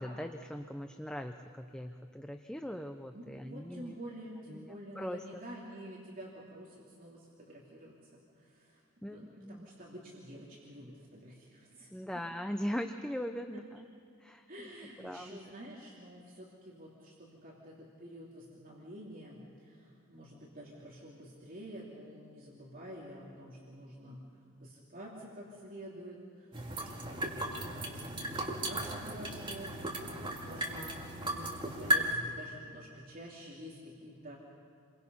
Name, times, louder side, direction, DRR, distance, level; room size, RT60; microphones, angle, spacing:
voice 1, 0.0-4.0 4.5-5.4 9.0-9.7 11.9-13.9 14.2-14.4 15.0-15.5, equal, 5° left, 6 dB, 0.6 m, -40 dB
voice 2, 3.1-8.8 9.1-11.9 13.5-13.6 14.5-24.2 24.6-34.4, equal, 40° right, -4 dB, 3.1 m, -49 dB
sound 1, 26.5-32.1, right 1 dB, 25° right, 2.2 m, -35 dB
29.0 x 23.0 x 5.5 m, 2.5 s
head